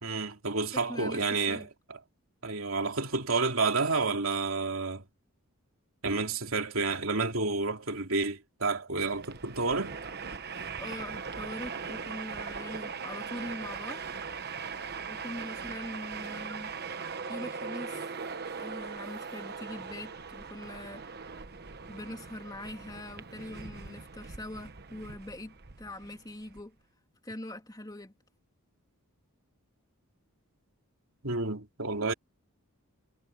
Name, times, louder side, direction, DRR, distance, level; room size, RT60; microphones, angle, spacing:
voice 1, 0.0-2.0 2.4-5.0 6.0-10.0 31.2-32.1, right 3 dB, 65° right, 3.2 m, -30 dB
voice 2, 0.7-1.7 10.8-14.0 15.1-16.7 17.3-18.1 18.5-21.1 21.9-26.7 27.2-28.1, left 1 dB, 15° left, 3.0 m, -42 dB
Train, 9.0-26.6, right 5 dB, 45° right, 1.1 m, -40 dB
head